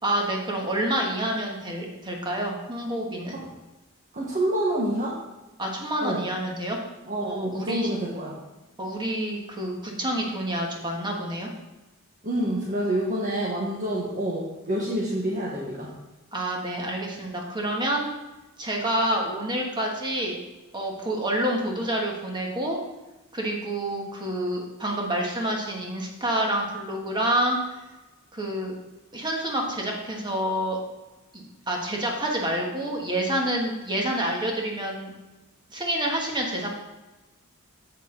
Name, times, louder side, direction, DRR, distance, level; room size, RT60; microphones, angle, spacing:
voice 1, 0.0-3.4 5.6-6.8 7.3-7.9 8.8-11.5 16.3-18.1 18.6-20.4 20.7-22.8 23.3-27.6 28.3-28.7 29.1-30.8 31.3-35.1 35.7-36.7, right 1 dB, 20° right, 0 dB, 1.4 m, -28 dB
voice 2, 4.1-5.2 6.0-6.2 7.0-8.3 12.2-15.9, right 1 dB, 40° right, -4 dB, 1.1 m, -27 dB
7.8 x 6.6 x 3.8 m, 1.1 s
head